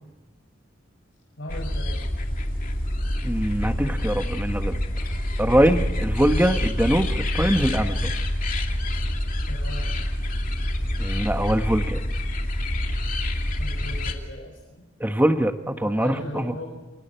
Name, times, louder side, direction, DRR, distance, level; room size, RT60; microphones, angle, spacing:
voice 1, 1.4-2.1 9.4-9.9 13.6-14.8 15.8-16.8, left 1 dB, 80° left, -3 dB, 6.6 m, -38 dB
sound 1, 1.5-14.1, left 1 dB, 45° left, 2.5 m, -26 dB
voice 2, 3.2-4.8 5.4-8.1 11.0-12.0 15.0-16.5, right 1 dB, 10° right, 7 dB, 1.4 m, -23 dB
29.0 x 22.0 x 4.5 m, 1.2 s
head